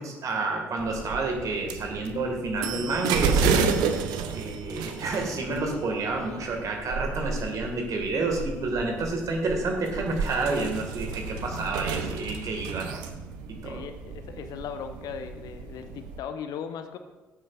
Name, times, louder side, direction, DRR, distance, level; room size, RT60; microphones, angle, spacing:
voice 1, 0.0-3.6 4.3-13.1 13.5-13.8, right 3 dB, 50° right, 2 dB, 2.0 m, -29 dB
sound 1, 0.8-16.2, right 5 dB, 65° right, 0.7 m, -32 dB
voice 2, 13.6-17.0, left 7 dB, 55° left, 9 dB, 0.7 m, -38 dB
14.5 x 8.5 x 2.5 m, 1.2 s
figure-of-eight pair, 45°, 8 cm